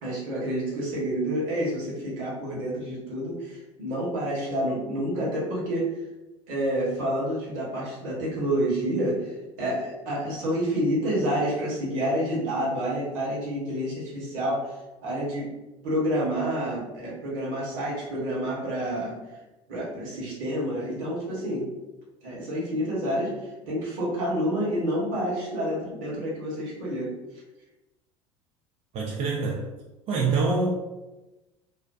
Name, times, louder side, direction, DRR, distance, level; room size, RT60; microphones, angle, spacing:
voice 1, 0.0-6.0 6.5-15.5 15.8-19.1 19.7-21.7 22.2-23.3 23.7-27.1, equal, 65° right, -5 dB, 1.1 m, -28 dB
voice 2, 28.9-29.7 30.1-30.7, right 4 dB, 40° right, -3 dB, 0.4 m, -25 dB
2.4 x 2.2 x 2.4 m, 1.1 s
hypercardioid pair, 75°, 17 cm